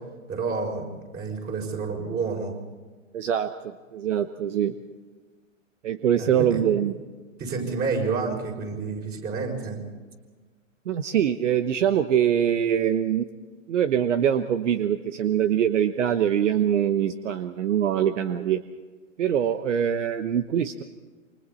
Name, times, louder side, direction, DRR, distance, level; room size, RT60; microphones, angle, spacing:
voice 1, 0.3-0.9 1.1-2.5 6.2-6.6 7.4-9.8, right 4 dB, 25° right, 1 dB, 6.3 m, -29 dB
voice 2, 3.1-4.7 5.8-6.9 10.9-13.3 13.7-18.6 19.2-20.8, right 9 dB, 65° right, 10 dB, 1.2 m, -23 dB
28.0 x 25.0 x 4.3 m, 1.4 s
hypercardioid pair, 115°, 39 cm